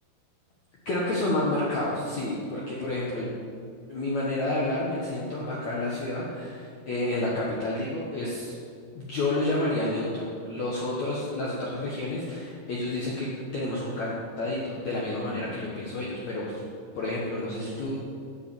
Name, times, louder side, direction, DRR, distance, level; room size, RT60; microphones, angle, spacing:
voice 1, 0.8-3.3 3.9-8.5 8.9-16.6 16.9-18.0, left 2 dB, 80° left, -5 dB, 1.6 m, -30 dB
8.4 x 7.9 x 8.3 m, 2.3 s
omnidirectional pair, 5.5 m